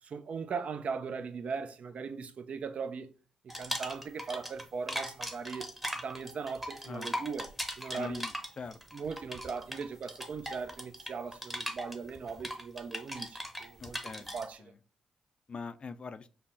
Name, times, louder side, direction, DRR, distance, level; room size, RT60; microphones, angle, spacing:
voice 1, 0.0-3.1 3.4-7.5 7.8-8.2 8.9-14.0 14.3-14.7, right 5 dB, 55° right, 0.4 m, -39 dB
sound 1, 3.5-4.6 4.9-14.5, equal, 5° right, 0.8 m, -39 dB
voice 2, 7.9-8.8 13.8-14.3 14.6-14.7 15.5-16.3, left 5 dB, 40° left, 0.4 m, -42 dB
5.4 x 2.1 x 2.6 m
hypercardioid pair, 40°, 3 cm